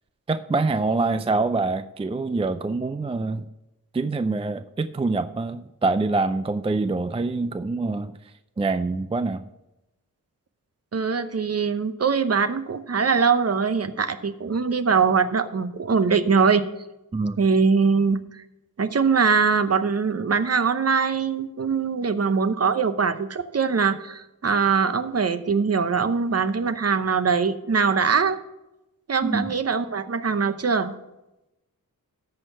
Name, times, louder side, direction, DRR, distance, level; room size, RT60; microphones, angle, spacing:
voice 1, 0.3-3.4 3.9-8.1 8.6-9.4 17.1-17.4 29.2-29.5, right 3 dB, 15° right, 12 dB, 0.4 m, -25 dB
voice 2, 10.9-16.7 17.4-18.4 18.8-28.4 29.1-31.0, right 5 dB, 45° right, 11 dB, 0.8 m, -22 dB
13.5 x 4.6 x 6.8 m, 0.96 s
cardioid pair, 55°, 35 cm